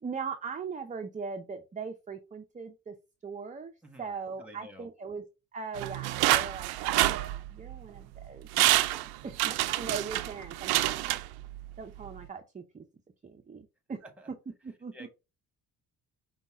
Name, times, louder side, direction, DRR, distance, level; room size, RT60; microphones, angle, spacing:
voice 1, 0.0-2.9 3.2-3.7 4.0-5.2 5.5-8.5 8.9-11.2 11.8-12.8 13.2-14.0 14.6-15.1, right 5 dB, 20° right, 6 dB, 0.6 m, -40 dB
voice 2, 3.8-4.9 9.2-9.3 14.0-14.3 14.9-15.1, equal, 5° right, 5 dB, 1.5 m, -51 dB
sound 1, 5.7-7.8 8.2-8.3 8.5-11.7 12.1-12.2, right 16 dB, 75° right, 0.5 m, -27 dB
5.2 x 2.3 x 3.6 m, 0.27 s
supercardioid pair, 75°, 37 cm